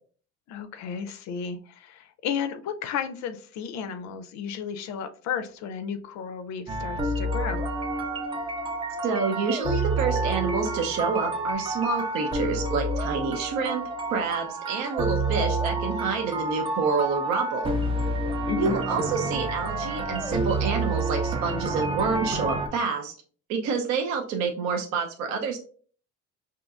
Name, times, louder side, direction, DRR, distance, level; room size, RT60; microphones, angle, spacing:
voice 1, 0.5-7.6 18.5-18.8, left 7 dB, 60° left, 8 dB, 0.4 m, -33 dB
sound 1, 6.7-22.7, right 2 dB, 15° right, 0.3 m, -29 dB
Dog, 8.1-11.5, right 1 dB, 80° right, 1.6 m, -45 dB
voice 2, 9.0-13.8 14.1-17.8 18.6-23.1 23.5-25.6, right 5 dB, 60° right, 3 dB, 0.6 m, -28 dB
5.1 x 2.8 x 2.3 m, 0.43 s
cardioid pair, 160°, 31 cm